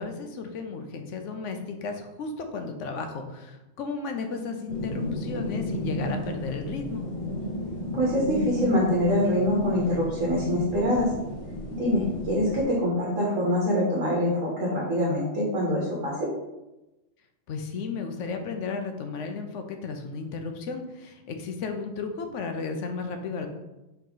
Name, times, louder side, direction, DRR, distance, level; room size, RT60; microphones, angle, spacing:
voice 1, 0.0-7.0 17.5-23.5, left 4 dB, 75° left, 5 dB, 0.9 m, -34 dB
sound 1, 4.7-12.6, left 1 dB, 45° left, 0.7 m, -33 dB
voice 2, 7.9-11.1 11.8-16.3, left 1 dB, 80° right, -4 dB, 1.3 m, -24 dB
4.5 x 3.0 x 3.9 m, 1.0 s
omnidirectional pair, 1.3 m